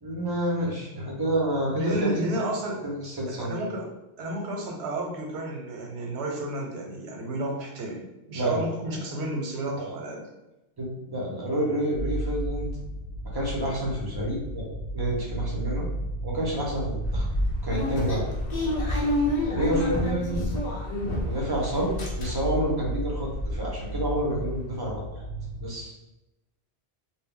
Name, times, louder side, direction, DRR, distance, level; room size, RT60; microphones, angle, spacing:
voice 1, 0.0-2.4 2.8-3.6 8.3-8.7 9.7-9.9 10.8-12.7 13.2-14.7 14.9-15.9 16.2-17.3 17.6-18.3 19.4-20.4 21.3-25.0 25.6-25.9, right 1 dB, 30° right, -3 dB, 0.5 m, -29 dB
voice 2, 1.7-2.8 3.3-3.9 4.2-10.2, right 1 dB, 85° right, 1 dB, 0.9 m, -31 dB
sound 1, 11.9-25.7, right 1 dB, 90° left, 0.9 m, -34 dB
sound 2, 17.0-21.5 21.8-22.6 23.0-23.1 23.3-23.5, left 1 dB, 50° left, 0.6 m, -29 dB
2.1 x 2.1 x 3.7 m, 0.95 s
omnidirectional pair, 1.1 m